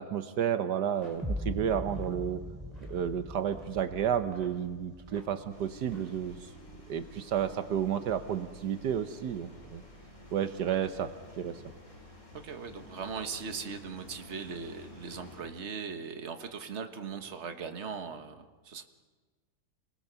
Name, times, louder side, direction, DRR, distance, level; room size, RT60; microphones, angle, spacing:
voice 1, 0.0-2.4 2.9-6.5 6.9-9.8 10.3-11.6, right 9 dB, 75° right, 9 dB, 1.5 m, -31 dB
sound 1, 0.8-6.3, equal, 20° right, 4.5 m, -58 dB
sound 2, 1.2-7.2, left 1 dB, 5° right, 0.7 m, -41 dB
sound 3, 5.5-15.4, left 1 dB, 45° left, 4.5 m, -51 dB
voice 2, 12.3-18.8, right 5 dB, 45° right, 6 dB, 1.6 m, -39 dB
27.5 x 19.5 x 6.9 m, 1.4 s
omnidirectional pair, 1.8 m